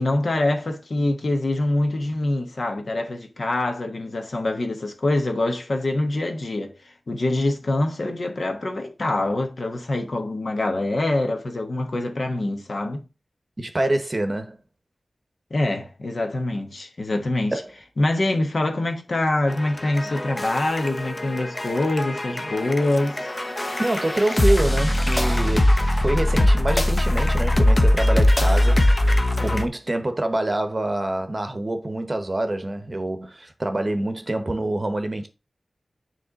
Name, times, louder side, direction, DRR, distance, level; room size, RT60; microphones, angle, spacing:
voice 1, 0.0-13.0 15.5-17.6 18.0-23.3, left 2 dB, 55° left, 1.2 m, -25 dB
voice 2, 13.6-14.6 17.5-17.6 23.8-28.9 29.4-35.3, right 1 dB, 30° right, 0.9 m, -26 dB
sound 1, 19.5-29.7, left 1 dB, 25° left, 0.8 m, -21 dB
9.2 x 3.3 x 4.0 m
wide cardioid pair, 90°, 0 cm